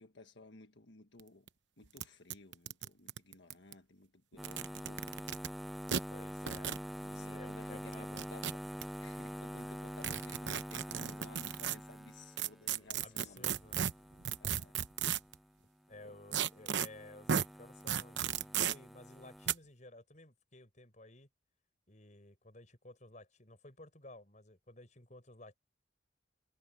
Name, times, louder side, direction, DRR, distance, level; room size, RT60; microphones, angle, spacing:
voice 1, 0.0-1.5 1.8-5.0 7.0-8.6 9.0-13.5 14.4-14.7 16.0-16.2, left 2 dB, 80° left, 1.5 m, -56 dB
sound 1, 1.2-1.3 1.5-1.6 2.0-2.1 2.3-3.7 4.3-5.5 5.9-6.0 6.5-6.8 7.9-8.8 10.0-11.8 12.4-15.3 16.3-16.9 17.3-17.5 17.9-18.7 19.5-19.6, right 8 dB, 85° right, 0.9 m, -34 dB
sound 2, 4.4-15.6 15.9-19.5, equal, ahead, 0.3 m, -46 dB
voice 2, 6.1-6.7 7.1-8.3 13.0-13.9 15.9-21.3 21.9-25.6, left 2 dB, 45° left, 6.3 m, -55 dB
head